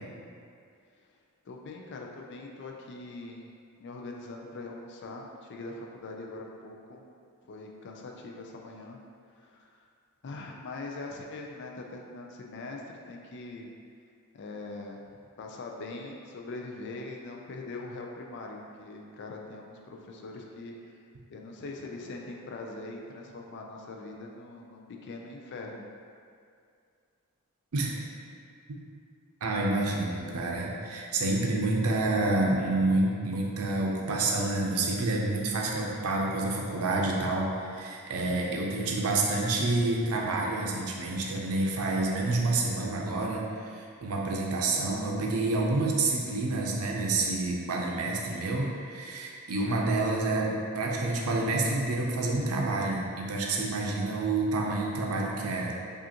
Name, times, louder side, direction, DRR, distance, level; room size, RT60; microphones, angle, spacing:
voice 1, 1.5-3.5 3.8-7.0 7.5-9.0 9.3-9.8 10.2-13.7 14.3-15.0 15.4-21.0 21.3-25.9, left 2 dB, 55° left, 0 dB, 0.4 m, -42 dB
voice 2, 29.4-55.7, right 2 dB, 75° right, -1 dB, 0.6 m, -28 dB
4.9 x 2.5 x 2.8 m, 2.3 s
head